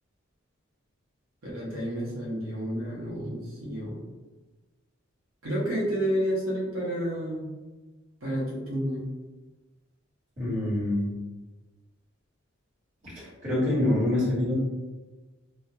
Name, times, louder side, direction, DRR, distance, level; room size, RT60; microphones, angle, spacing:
voice 1, 1.4-4.0 5.4-7.5 8.2-9.1, equal, 80° right, -7 dB, 0.7 m, -30 dB
voice 2, 10.4-11.1 13.4-14.5, left 1 dB, 35° right, -10 dB, 1.2 m, -25 dB
2.2 x 2.1 x 2.7 m, 1.2 s
head